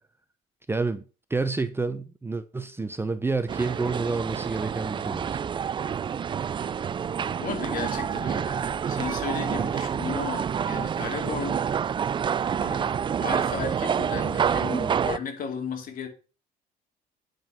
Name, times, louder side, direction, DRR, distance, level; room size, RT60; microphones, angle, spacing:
voice 1, 0.7-1.0 1.3-5.4 9.6-9.7, right 3 dB, 15° right, 0.8 m, -29 dB
sound 1, 3.5-15.2, right 7 dB, 30° right, 0.4 m, -28 dB
voice 2, 7.3-11.6 12.6-12.9 13.2-16.1, left 6 dB, 55° left, 2.6 m, -35 dB
9.4 x 5.3 x 5.8 m
cardioid pair, 110°, 17 cm